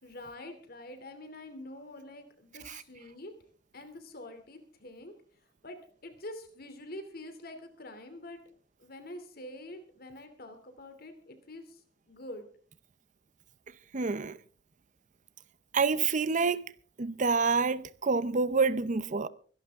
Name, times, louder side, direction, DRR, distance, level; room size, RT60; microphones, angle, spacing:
voice 1, 0.0-3.3 3.7-5.1 5.6-5.8 6.0-8.4 8.8-11.8 12.1-12.5, left 1 dB, 55° left, 2.7 m, -46 dB
voice 2, 13.9-14.4 15.7-16.6 17.0-19.3, right 4 dB, 40° right, 0.6 m, -27 dB
24.5 x 11.5 x 3.5 m
head